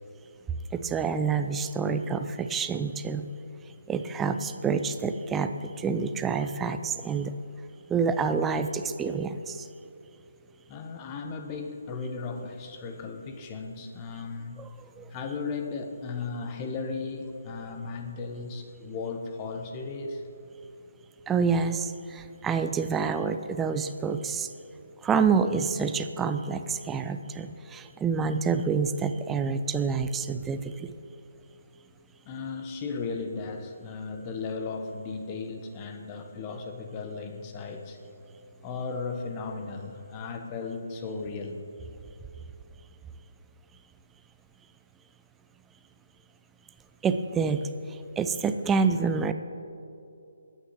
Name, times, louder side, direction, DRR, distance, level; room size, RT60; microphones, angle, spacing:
voice 1, 0.7-3.3 3.9-7.3 7.9-9.7 14.6-15.1 21.3-24.5 25.0-30.9 47.0-49.3, right 5 dB, 10° right, 9 dB, 0.5 m, -28 dB
voice 2, 10.7-14.7 15.1-20.2 32.2-38.0 38.6-41.7, left 4 dB, 25° left, 5 dB, 1.1 m, -36 dB
22.0 x 9.0 x 3.2 m, 2.7 s
figure-of-eight pair, 145°, 0 cm